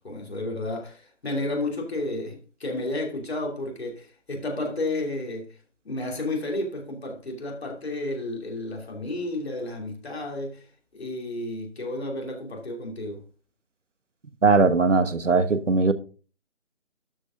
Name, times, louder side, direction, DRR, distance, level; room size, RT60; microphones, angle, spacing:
voice 1, 0.0-5.6 5.8-10.6 10.9-13.2, left 2 dB, 60° left, 3.1 m, -32 dB
voice 2, 14.4-15.9, right 4 dB, 85° right, 1.3 m, -19 dB
12.5 x 5.2 x 3.8 m
figure-of-eight pair, 160°, 36 cm